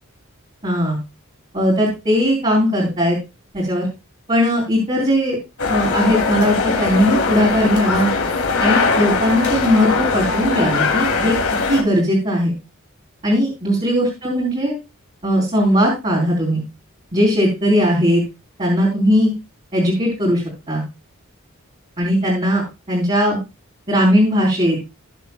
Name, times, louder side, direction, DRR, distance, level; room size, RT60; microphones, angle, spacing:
voice 1, 0.6-1.0 1.5-3.2 3.5-3.9 4.3-5.4 5.7-8.1 8.6-11.4 11.7-12.5 13.2-14.8 15.2-16.6 17.1-18.2 18.6-19.3 19.7-20.8 22.0-23.4 23.9-24.8, equal, 30° right, -5 dB, 4.0 m, -18 dB
sound 1, 5.6-11.8, left 4 dB, 80° left, 2.8 m, -20 dB
19.0 x 7.1 x 2.3 m, 0.26 s
head